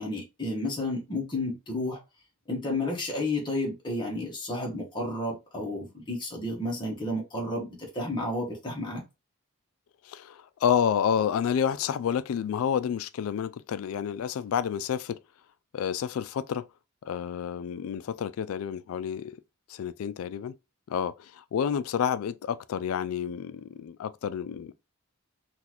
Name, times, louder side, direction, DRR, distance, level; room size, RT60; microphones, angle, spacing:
voice 1, 0.0-2.0 2.5-9.0, left 1 dB, 20° left, 1.0 m, -31 dB
voice 2, 10.0-15.2 15.7-16.7 17.0-19.4 19.7-20.5 20.9-24.7, left 8 dB, 70° left, 0.3 m, -29 dB
3.9 x 2.4 x 2.9 m
head